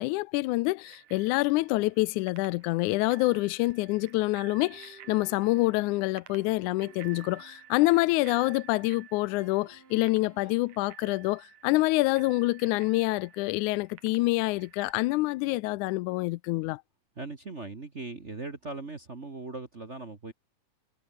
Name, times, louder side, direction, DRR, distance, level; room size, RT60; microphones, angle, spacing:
voice 1, 0.0-16.8, left 20 dB, 80° left, 2.0 m, -27 dB
Bicycle bell, 0.8-14.9, right 11 dB, 70° right, 2.9 m, -53 dB
sound 1, 4.7-7.7 9.4-10.8, right 4 dB, 85° right, 7.3 m, -55 dB
voice 2, 17.2-20.3, right 3 dB, 30° right, 1.3 m, -39 dB
omnidirectional pair, 3.6 m